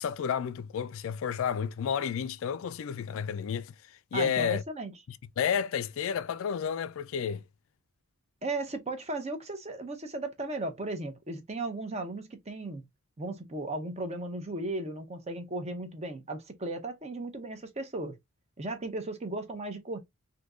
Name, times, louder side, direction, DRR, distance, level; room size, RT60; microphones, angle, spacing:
voice 1, 0.0-3.7 4.1-4.6 5.1-7.4, left 7 dB, 60° left, 0.3 m, -31 dB
voice 2, 4.1-4.9 8.4-12.8 13.2-18.2 18.6-20.0, right 2 dB, 30° right, 0.7 m, -36 dB
3.5 x 2.7 x 2.4 m
head